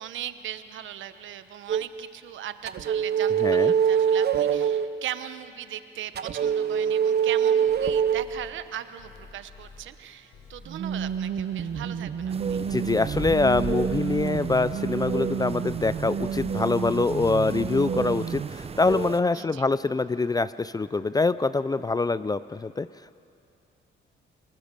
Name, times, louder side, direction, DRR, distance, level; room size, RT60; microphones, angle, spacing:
voice 1, 0.0-12.6 19.3-19.7, right 11 dB, 75° right, 11 dB, 1.1 m, -39 dB
sound 1, 1.7-1.9 2.7-4.9 6.2-8.3 10.7-18.5, right 8 dB, 55° right, 0.9 m, -26 dB
voice 2, 3.4-3.7 12.6-22.9, left 3 dB, 20° left, 15 dB, 0.5 m, -25 dB
sound 2, 7.7-18.4, left 4 dB, 75° left, 4.7 m, -50 dB
sound 3, 12.3-19.2, right 5 dB, 30° right, 0.7 m, -35 dB
29.5 x 19.5 x 6.8 m, 2.6 s
cardioid pair, 90°, 20 cm